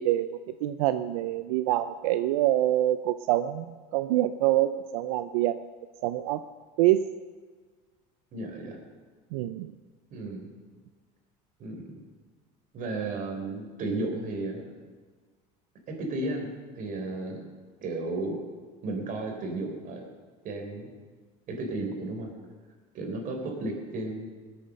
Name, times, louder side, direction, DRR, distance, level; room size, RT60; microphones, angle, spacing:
voice 1, 0.0-5.6 6.0-6.4 6.8-7.1 9.3-9.7, right 14 dB, 90° right, 11 dB, 0.6 m, -26 dB
voice 2, 8.3-8.8 10.1-10.5 11.6-12.0 12.7-14.7 15.9-17.5 17.8-18.4 18.8-20.1 20.4-20.9 21.5-22.3 22.9-24.3, right 2 dB, 45° right, 2 dB, 3.8 m, -34 dB
19.0 x 8.6 x 6.5 m, 1.5 s
supercardioid pair, 125°, 18 cm